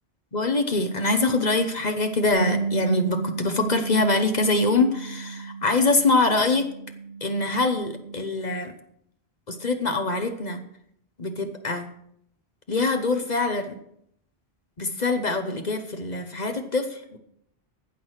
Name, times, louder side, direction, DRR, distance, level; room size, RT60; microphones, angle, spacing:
voice 1, 0.3-6.7 7.2-8.7 9.5-10.6 11.2-11.9 12.7-13.7 14.8-17.2, left 3 dB, 45° left, 7 dB, 1.1 m, -24 dB
Bass guitar, 2.3-8.5, right 4 dB, 75° left, 1.8 m, -33 dB
15.5 x 6.2 x 6.4 m, 0.73 s
omnidirectional pair, 1.1 m